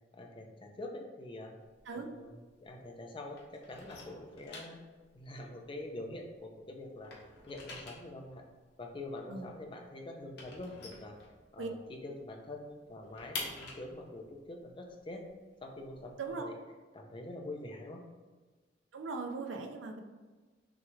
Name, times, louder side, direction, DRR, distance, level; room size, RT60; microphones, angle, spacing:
voice 1, 0.1-1.5 1.9-4.8 5.1-7.1 7.5-8.4 8.8-11.2 11.5-15.2 15.6-16.6 16.9-18.0, left 1 dB, 30° left, 2 dB, 0.5 m, -45 dB
sound 1, 1.6-3.0 3.3-6.5 6.8-11.8 12.2-12.3 12.6-16.3, left 3 dB, 60° left, 1.0 m, -47 dB
voice 2, 18.9-20.0, right 4 dB, 80° right, 4 dB, 0.5 m, -39 dB
6.0 x 2.4 x 3.1 m, 1.3 s
head